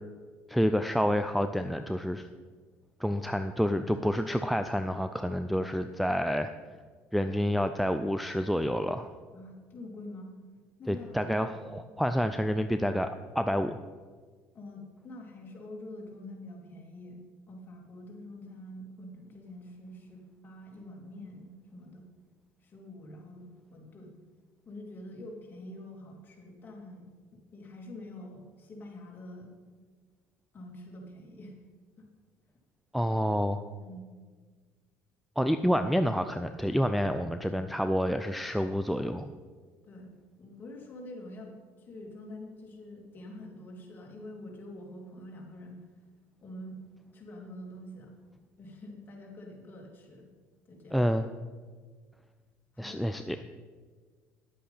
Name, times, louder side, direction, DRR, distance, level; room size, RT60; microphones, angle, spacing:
voice 1, 0.5-2.3 3.0-6.5 7.1-9.1 10.9-13.8 32.9-33.6 35.4-39.3 50.9-51.3 52.8-53.4, equal, ahead, 7 dB, 0.4 m, -28 dB
voice 2, 9.3-10.3 10.8-11.4 11.7-11.9 14.5-17.2 17.5-22.0 22.6-23.4 23.7-24.1 24.6-29.5 30.5-31.6 32.0-32.1 33.8-34.0 39.8-40.1 40.4-45.8 46.4-46.8 47.1-48.2 48.6-50.3 50.7-51.1 52.7-53.2, left 1 dB, 35° left, -1 dB, 2.8 m, -46 dB
10.5 x 8.4 x 5.7 m, 1.5 s
cardioid pair, 110°, 6 cm